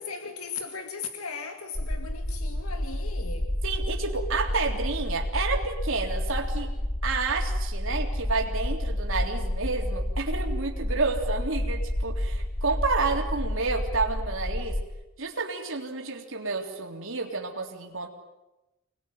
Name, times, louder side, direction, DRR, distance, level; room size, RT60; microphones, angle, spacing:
voice 1, 0.0-3.5, left 5 dB, 85° left, 2.1 m, -37 dB
sound 1, 1.7-14.8, left 1 dB, 35° left, 2.4 m, -30 dB
voice 2, 3.6-6.7 7.0-14.8 15.2-18.1, right 4 dB, 65° right, 3.5 m, -30 dB
26.0 x 21.0 x 9.3 m
head